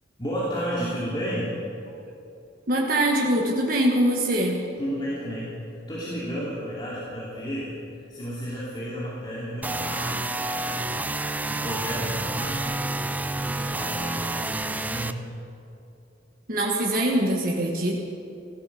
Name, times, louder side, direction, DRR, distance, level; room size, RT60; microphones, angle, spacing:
voice 1, 0.2-1.5 4.8-5.6 5.9-7.7 8.1-10.3 10.7-11.1 11.5-13.0 13.3-15.3, equal, 25° left, -8 dB, 2.8 m, -32 dB
voice 2, 2.7-4.6 16.5-18.0, right 1 dB, 50° right, -1 dB, 1.6 m, -23 dB
sound 1, 9.6-15.1, right 2 dB, 10° right, 0.4 m, -29 dB
16.0 x 13.0 x 6.9 m, 2.7 s
head